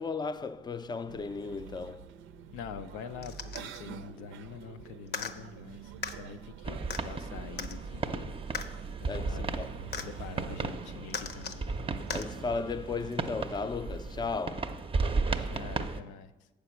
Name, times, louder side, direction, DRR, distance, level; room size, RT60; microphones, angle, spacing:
voice 1, 0.0-2.1 9.1-9.8 12.1-14.8, left 4 dB, 20° left, 0.4 m, -35 dB
sound 1, 1.1-14.3, right 7 dB, 80° right, 0.5 m, -47 dB
voice 2, 2.5-8.3 9.0-9.7 10.0-11.7 15.3-16.3, left 6 dB, 90° left, 0.5 m, -45 dB
sound 2, 3.2-3.8 5.1-5.3 6.0-6.2 6.9-7.0 7.6-7.8 8.5-8.7 9.9-10.1 11.1-11.6 12.1-12.3 13.2-13.3, left 5 dB, 55° left, 0.7 m, -37 dB
sound 3, 6.6-16.0, right 4 dB, 25° right, 0.6 m, -35 dB
7.3 x 4.9 x 7.0 m
supercardioid pair, 60°, 20 cm